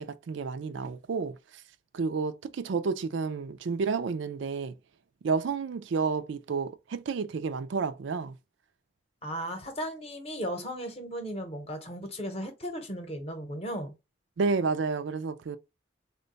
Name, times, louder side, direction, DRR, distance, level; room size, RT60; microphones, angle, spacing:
voice 1, 0.0-1.4 1.9-4.7 5.2-8.4 14.4-15.6, right 5 dB, 70° right, 0.4 m, -30 dB
voice 2, 9.2-13.9, equal, 30° left, 0.8 m, -36 dB
3.7 x 2.2 x 3.9 m
head